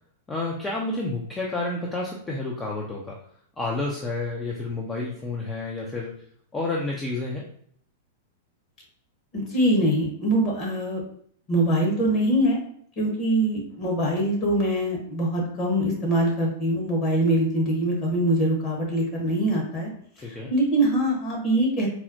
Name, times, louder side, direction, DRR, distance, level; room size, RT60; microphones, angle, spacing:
voice 1, 0.3-3.3 3.6-6.2 6.5-7.4 20.2-20.5, left 2 dB, 15° left, -2 dB, 0.5 m, -30 dB
voice 2, 9.3-11.0 11.5-12.6 13.0-19.9 20.3-21.9, right 1 dB, 35° left, -2 dB, 1.3 m, -23 dB
4.1 x 2.0 x 2.7 m, 0.63 s
figure-of-eight pair, 100°, 0 cm